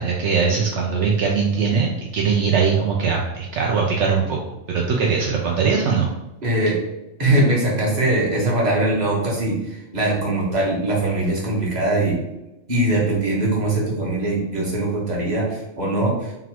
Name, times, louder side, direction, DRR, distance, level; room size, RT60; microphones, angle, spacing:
voice 1, 0.0-4.4 4.7-6.1, right 5 dB, 70° right, -1 dB, 0.9 m, -21 dB
voice 2, 6.4-6.8 7.2-12.2 12.7-16.3, right 1 dB, 35° right, -4 dB, 1.3 m, -21 dB
3.8 x 2.4 x 4.4 m, 0.94 s
omnidirectional pair, 1.3 m